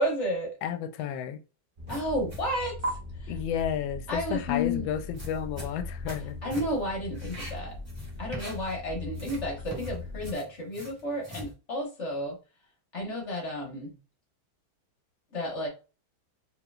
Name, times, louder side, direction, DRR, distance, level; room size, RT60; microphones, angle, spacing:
voice 1, 0.0-0.5 1.9-2.8 3.2-3.3 4.1-4.9 6.4-7.7 8.2-12.3 12.9-13.9 15.3-15.7, left 1 dB, 40° left, 1.3 m, -31 dB
voice 2, 0.6-1.4 3.3-6.4, left 9 dB, 80° left, 1.3 m, -32 dB
sound 1, 1.8-10.3, left 3 dB, 55° right, 0.5 m, -40 dB
sound 2, 1.9-2.5 2.8-2.9 5.0-6.2 6.5-6.9 7.1-8.9 9.1-11.5, right 1 dB, 15° right, 1.5 m, -40 dB
4.7 x 3.2 x 2.3 m
omnidirectional pair, 2.2 m